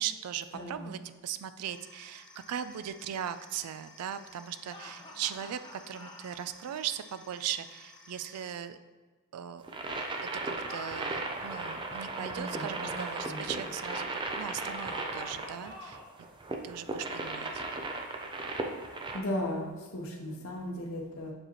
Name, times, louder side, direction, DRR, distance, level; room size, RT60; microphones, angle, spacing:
voice 1, 0.0-8.8 9.3-9.7 10.4-16.0 16.6-17.7, right 9 dB, 90° right, 12 dB, 0.3 m, -38 dB
voice 2, 0.5-0.9 12.2-12.9 13.2-13.5 19.1-21.3, left 1 dB, 65° left, -1 dB, 0.8 m, -36 dB
sound 1, 1.6-8.5, left 3 dB, 5° left, 1.7 m, -55 dB
sound 2, 4.7-6.4 10.5-11.9 14.7-16.2, left 2 dB, 20° left, 0.7 m, -47 dB
sound 3, 9.6-19.2, right 2 dB, 20° right, 0.4 m, -36 dB
6.5 x 4.8 x 2.9 m, 1.3 s
head